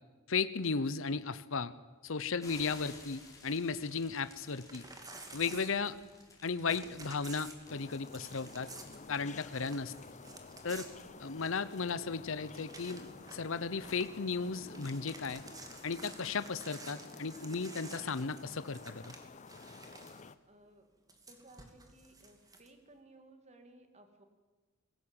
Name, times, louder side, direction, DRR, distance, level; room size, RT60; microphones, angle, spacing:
voice 1, 0.3-1.7 2.0-4.8 5.3-6.0 6.4-8.7 9.1-9.9 10.6-10.9 11.2-15.4 15.8-19.1, left 4 dB, 65° left, 14 dB, 0.8 m, -35 dB
sound 1, 2.4-16.6, left 3 dB, 15° left, 4.6 m, -59 dB
Crumpling crinkling / Tearing, 4.2-6.4 6.7-11.8 12.1-12.2 12.5-13.5 13.8-14.2 14.5-20.3 21.1-22.7, right 2 dB, 20° right, 2.5 m, -52 dB
sound 2, 7.6-20.3, left 4 dB, 35° left, 0.7 m, -52 dB
voice 2, 20.5-20.9 21.3-24.3, right 2 dB, 35° right, 6 dB, 2.4 m, -59 dB
21.5 x 18.0 x 8.9 m, 1.3 s
head